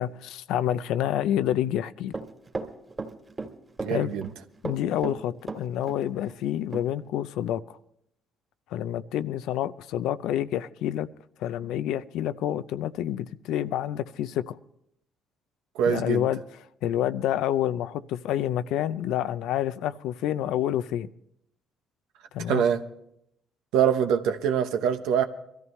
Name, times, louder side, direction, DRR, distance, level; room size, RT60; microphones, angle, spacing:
voice 1, 0.0-2.1 3.9-4.1 4.6-7.8 8.7-11.1 11.4-14.6 15.9-16.4 16.8-21.1 22.3-22.7, left 11 dB, 80° left, 0.5 m, -28 dB
Run, 2.1-3.5 3.8-4.3 4.6-6.0 6.3-6.4 6.7-6.8, right 3 dB, 25° right, 1.9 m, -34 dB
voice 2, 3.8-4.3 15.7-16.3 22.5-22.8 23.7-25.2, right 8 dB, 90° right, 0.9 m, -24 dB
22.5 x 14.0 x 3.2 m
cardioid pair, 85°, 0 cm